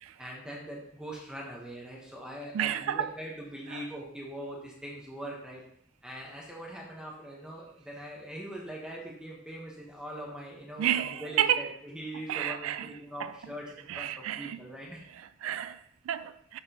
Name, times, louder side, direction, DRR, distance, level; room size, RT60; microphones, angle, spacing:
voice 1, 0.2-5.6 6.0-15.0, right 1 dB, 5° right, 1.1 m, -42 dB
voice 2, 2.5-3.1 3.7-3.8 10.8-11.7 12.3-12.9 13.2-13.3 13.9-14.6 15.1-16.6, right 10 dB, 80° right, 0.3 m, -31 dB
6.8 x 5.9 x 3.0 m
head